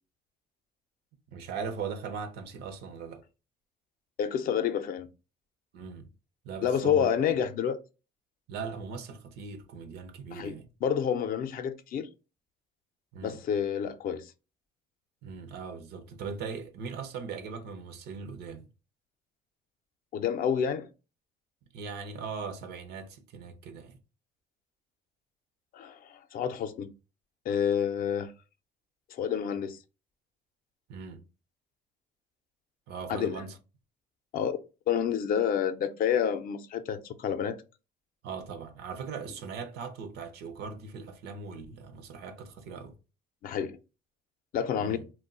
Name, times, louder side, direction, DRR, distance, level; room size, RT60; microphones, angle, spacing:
voice 1, 1.3-3.2 5.7-6.1 6.4-7.1 8.5-10.7 13.1-13.4 15.2-18.7 21.7-24.0 30.9-31.2 32.9-33.6 38.2-42.9 44.8-45.0, right 5 dB, 75° right, 0.6 m, -39 dB
voice 2, 4.2-5.1 6.6-7.8 10.3-12.1 13.2-14.3 20.1-20.9 25.7-26.9 27.5-28.3 29.1-29.8 33.1-33.4 34.3-34.6 34.9-37.6 43.4-43.8 44.5-45.0, left 8 dB, 60° left, 0.4 m, -29 dB
2.2 x 2.1 x 3.6 m
cardioid pair, 110°, 17 cm